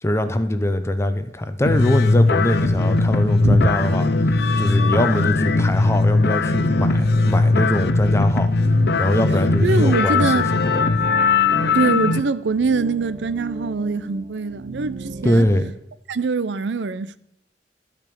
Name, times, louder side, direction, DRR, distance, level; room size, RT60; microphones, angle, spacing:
voice 1, 0.0-8.5 9.0-10.4 15.2-15.7, left 1 dB, 15° left, 0.7 m, -22 dB
sound 1, 1.7-12.2, left 3 dB, 65° left, 0.6 m, -19 dB
sound 2, 2.6-15.7, right 2 dB, 40° right, 0.6 m, -36 dB
voice 2, 9.6-10.5 11.7-15.5 16.1-17.2, right 4 dB, 85° right, 0.6 m, -23 dB
12.5 x 5.2 x 8.6 m
head